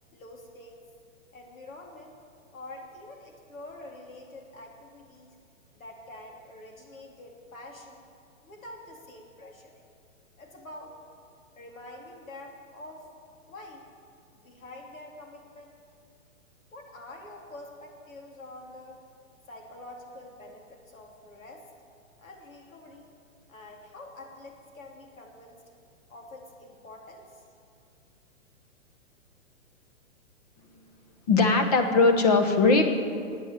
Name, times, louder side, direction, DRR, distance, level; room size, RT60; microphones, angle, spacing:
voice 1, 0.1-0.8 1.3-2.1 2.5-5.3 5.7-8.1 8.4-9.8 10.4-10.9 11.5-13.1 13.4-13.9 14.3-15.7 16.7-19.0 19.5-21.6 22.2-23.1 23.5-25.6 26.1-27.4, left 2 dB, 85° left, 1 dB, 3.2 m, -46 dB
voice 2, 31.3-32.8, left 3 dB, 30° left, 5 dB, 1.1 m, -20 dB
15.5 x 9.2 x 7.6 m, 2.4 s
hypercardioid pair, 175°, 39 cm